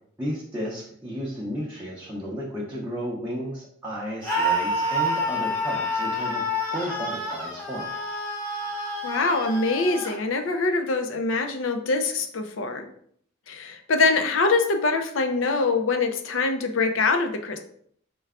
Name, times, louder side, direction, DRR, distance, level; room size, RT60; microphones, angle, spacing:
voice 1, 0.2-6.4 6.7-7.9, equal, 10° right, -6 dB, 0.6 m, -33 dB
Screaming, 4.2-10.2, equal, 10° left, 1.0 m, -28 dB
voice 2, 9.0-12.9 13.5-17.6, left 3 dB, 75° left, 5 dB, 0.6 m, -24 dB
4.6 x 2.2 x 3.5 m, 0.63 s
head